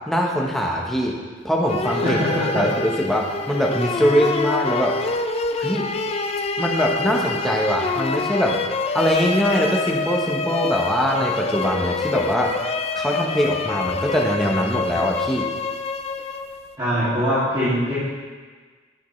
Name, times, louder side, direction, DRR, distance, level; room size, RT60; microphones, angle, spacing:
voice 1, 0.1-1.2 1.4-2.2 2.5-5.0 5.6-5.9 6.6-8.6 8.9-12.5 13.0-15.5, equal, ahead, -2 dB, 0.9 m, -22 dB
sound 1, 1.7-16.8, left 4 dB, 30° left, 0.4 m, -26 dB
voice 2, 2.0-2.7 16.8-17.9, equal, 25° right, -14 dB, 2.4 m, -22 dB
10.5 x 7.0 x 3.2 m, 1.5 s
head